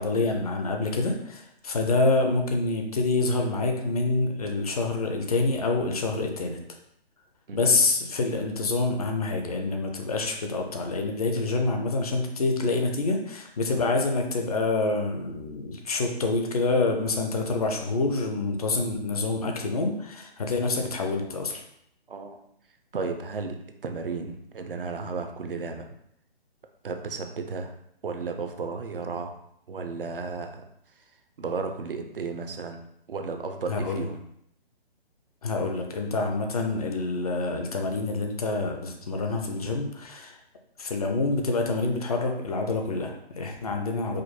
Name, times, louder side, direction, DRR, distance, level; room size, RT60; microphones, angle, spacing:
voice 1, 0.0-6.6 7.5-21.6 33.7-34.1 35.4-40.4 40.8-44.2, left 3 dB, 40° left, 3 dB, 0.6 m, -27 dB
voice 2, 22.1-22.4 22.9-25.9 26.8-27.7 28.0-29.4 29.7-30.7 31.4-32.8 33.1-34.2, right 4 dB, 60° right, 6 dB, 0.6 m, -33 dB
5.0 x 2.1 x 4.3 m, 0.72 s
figure-of-eight pair, 140°, 31 cm